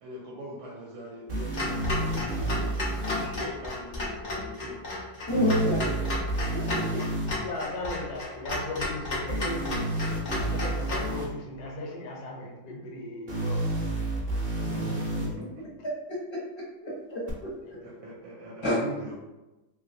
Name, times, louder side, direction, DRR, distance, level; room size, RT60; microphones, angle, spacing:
voice 1, 0.0-2.5 3.1-4.8 14.8-14.9 15.4-15.7 17.8-19.2, equal, 75° right, -2 dB, 1.1 m, -41 dB
sound 1, 1.3-3.3 5.3-7.3 9.3-11.3 13.3-15.3 17.3-17.4, right 2 dB, 45° right, 0.6 m, -30 dB
Clock, 1.5-11.1, left 2 dB, 85° left, 0.4 m, -33 dB
voice 2, 5.3-5.9 6.5-6.6 6.9-7.0 16.8-17.8 18.6-18.8, equal, 25° left, -6 dB, 0.6 m, -28 dB
voice 3, 7.2-9.9 10.4-13.6 14.6-15.3 17.6-17.7 18.0-18.2, left 2 dB, 70° left, -1 dB, 1.3 m, -37 dB
3.0 x 2.8 x 2.7 m, 1.0 s
omnidirectional pair, 1.8 m